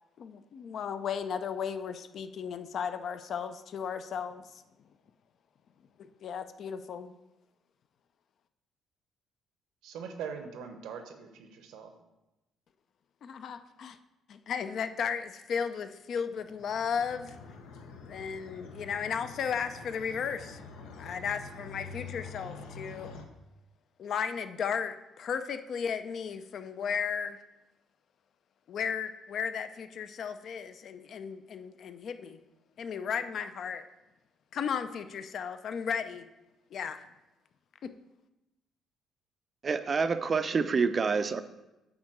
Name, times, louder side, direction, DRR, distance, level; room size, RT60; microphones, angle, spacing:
voice 1, 0.2-4.6 6.0-7.1 13.2-14.0 14.3-17.4 18.1-20.6 21.0-23.2 24.0-27.4 28.7-32.4 32.8-33.8 34.5-36.3 36.7-37.1 37.8-37.9, left 7 dB, 55° left, 10 dB, 0.5 m, -35 dB
voice 2, 9.8-11.9, right 6 dB, 90° right, 6 dB, 0.9 m, -42 dB
sound 1, 16.3-23.2, left 4 dB, 85° left, 0.8 m, -46 dB
voice 3, 39.6-41.4, right 5 dB, 35° right, 11 dB, 0.4 m, -27 dB
8.7 x 3.6 x 6.4 m, 0.99 s
cardioid pair, 120°, 0 cm